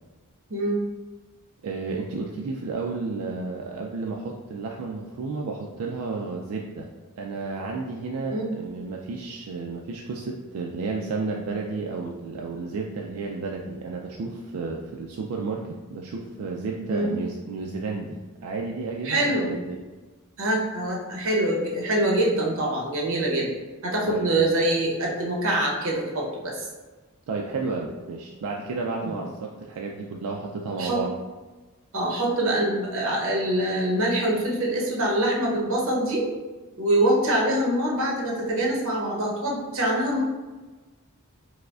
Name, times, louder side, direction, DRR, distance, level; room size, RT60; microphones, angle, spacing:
voice 1, 0.5-0.8 8.2-8.5 16.9-17.2 19.0-19.5 20.4-23.5 23.8-26.7 29.0-29.2 30.8-31.0 31.9-36.3 36.8-40.2, right 1 dB, 65° right, -2 dB, 0.8 m, -24 dB
voice 2, 1.6-6.9 7.2-19.8 24.1-24.3 27.3-31.1, right 4 dB, 90° right, 0 dB, 0.3 m, -32 dB
4.7 x 2.1 x 2.3 m, 1.3 s
head